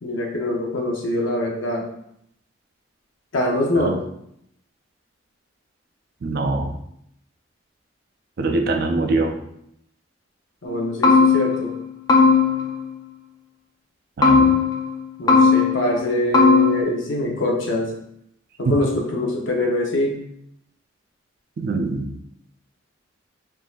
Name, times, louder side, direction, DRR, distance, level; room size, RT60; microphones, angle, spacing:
voice 1, 0.0-1.8 3.3-4.0 10.6-11.7 15.2-17.9 18.6-20.2, left 1 dB, 70° left, 0 dB, 0.7 m, -23 dB
voice 2, 6.2-6.7 8.4-9.4 14.2-14.5 18.7-18.8 21.6-22.1, right 3 dB, 50° right, 4 dB, 0.4 m, -23 dB
sound 1, 10.7-10.8 11.0-11.7 12.1-12.8 14.2-14.9 15.3-16.0 16.3-16.8, left 4 dB, 20° left, 0.4 m, -16 dB
3.8 x 2.6 x 2.4 m, 0.74 s
head